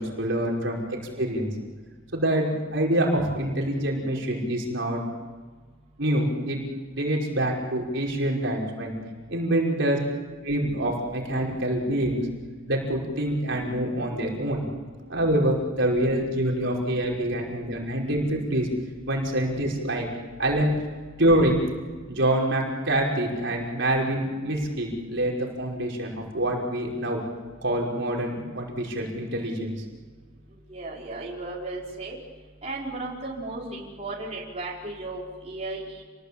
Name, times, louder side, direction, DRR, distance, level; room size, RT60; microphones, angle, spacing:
voice 1, 0.0-1.5 2.1-5.0 6.0-6.6 6.9-8.9 9.3-10.0 10.4-12.3 12.7-14.6 15.1-18.7 19.1-20.1 20.4-20.7 21.2-21.6 22.1-27.2 27.6-29.8, right 1 dB, 60° right, -1 dB, 5.4 m, -26 dB
voice 2, 30.7-32.2 32.6-36.0, right 2 dB, 30° right, -5 dB, 5.0 m, -35 dB
29.5 x 21.0 x 8.5 m, 1.4 s
head